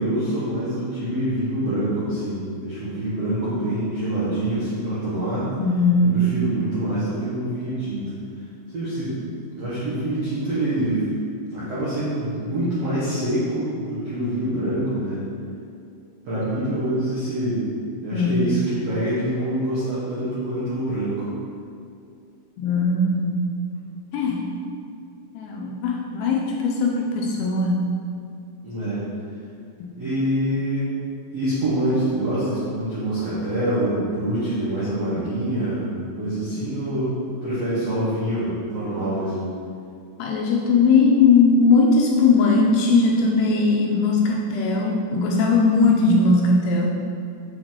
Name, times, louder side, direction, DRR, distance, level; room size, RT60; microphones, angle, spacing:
voice 1, 0.0-5.5 6.0-8.1 8.7-9.1 9.5-11.1 11.5-15.2 16.2-17.7 18.0-21.3 28.6-29.0 29.9-30.9 31.3-35.9 36.2-37.1 37.4-39.4, right 1 dB, 75° right, -11 dB, 1.5 m, -25 dB
voice 2, 5.6-6.3 18.1-18.5 22.6-23.5 24.1-24.5 25.3-27.9 29.8-30.0 40.2-47.0, left 3 dB, 85° left, 0 dB, 2.4 m, -19 dB
7.0 x 5.1 x 3.7 m, 2.4 s
omnidirectional pair, 4.9 m